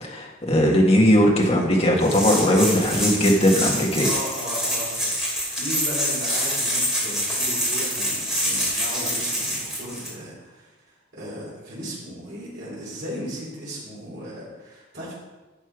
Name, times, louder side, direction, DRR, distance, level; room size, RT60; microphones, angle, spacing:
voice 1, 0.0-4.1, equal, 30° left, 0 dB, 1.6 m, -19 dB
sound 1, 2.0-10.1, equal, ahead, 2.4 m, -26 dB
voice 2, 4.0-10.7 11.1-15.1, equal, 50° right, -7 dB, 3.9 m, -36 dB
11.0 x 6.8 x 4.9 m, 1.2 s
head